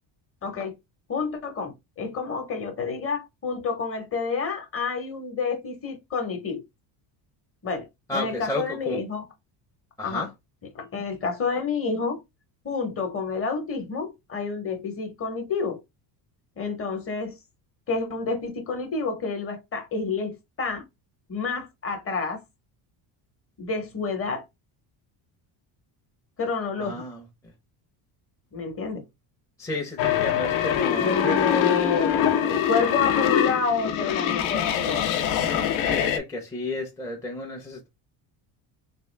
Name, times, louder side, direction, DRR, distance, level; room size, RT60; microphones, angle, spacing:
voice 1, 0.4-0.7 1.1-6.6 7.6-9.2 10.0-10.3 10.7-12.2 12.6-15.8 16.6-17.4 17.9-20.8 21.3-22.4 23.6-24.4 26.4-27.0 28.5-29.0 31.0-35.0, left 4 dB, 30° left, 0.9 m, -29 dB
voice 2, 8.1-9.0 10.0-10.3 26.8-27.2 29.6-31.6 35.9-37.9, left 1 dB, 5° left, 0.5 m, -32 dB
sound 1, 30.0-36.2, left 9 dB, 80° left, 0.8 m, -24 dB
3.6 x 2.4 x 3.2 m
cardioid pair, 145°, 47 cm